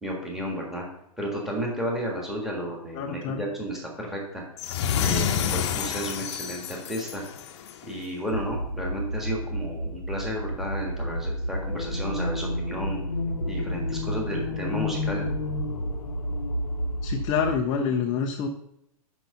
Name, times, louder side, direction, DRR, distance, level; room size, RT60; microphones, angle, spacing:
voice 1, 0.0-0.9 1.2-4.4 5.0-7.2 7.8-13.0 13.4-15.3, equal, ahead, -2 dB, 1.6 m, -32 dB
voice 2, 2.9-3.5 17.0-18.5, left 6 dB, 20° left, 3 dB, 0.5 m, -27 dB
sound 1, 4.6-7.9, left 8 dB, 45° left, 0.8 m, -28 dB
sound 2, 8.3-17.5, right 1 dB, 60° right, 2.4 m, -32 dB
sound 3, 11.5-17.5, left 6 dB, 90° left, 0.9 m, -34 dB
6.1 x 5.6 x 6.7 m, 0.76 s
hypercardioid pair, 160°, 19 cm